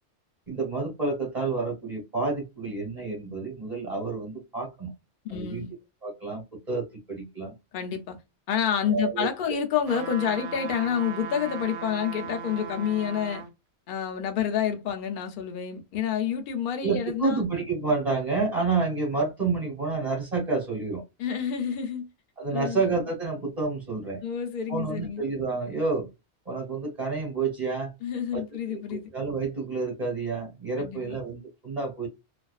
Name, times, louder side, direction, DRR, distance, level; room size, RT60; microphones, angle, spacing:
voice 1, 0.5-4.9 5.3-5.6 6.0-7.5 8.9-9.6 16.8-21.0 22.4-24.2 24.7-26.1 26.5-27.9 28.3-28.4 28.7-32.1, right 4 dB, 35° right, 1.0 m, -29 dB
voice 2, 5.2-5.7 7.7-8.2 8.5-13.4 13.9-17.4 21.2-22.1 22.5-22.8 24.2-25.2 28.0-29.1 30.8-31.2, left 8 dB, 55° left, 0.7 m, -28 dB
sound 1, 9.9-13.5 14.0-14.1, right 6 dB, 70° right, 0.8 m, -38 dB
2.4 x 2.3 x 2.3 m
omnidirectional pair, 1.2 m